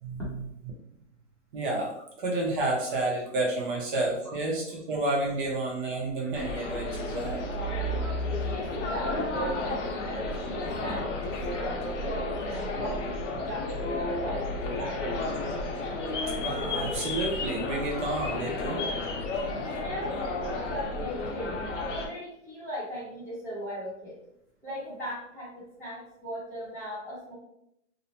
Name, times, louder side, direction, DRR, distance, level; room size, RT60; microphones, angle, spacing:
voice 1, 0.0-0.5 1.5-1.9 2.2-7.4 16.4-18.8, right 2 dB, 45° right, -2 dB, 0.7 m, -30 dB
sound 1, 6.3-22.1, left 2 dB, 70° left, 0.8 m, -32 dB
voice 2, 8.4-15.2 19.7-24.2 24.6-27.3, equal, 5° left, -10 dB, 0.7 m, -38 dB
2.6 x 2.0 x 2.9 m, 0.77 s
hypercardioid pair, 150°, 37 cm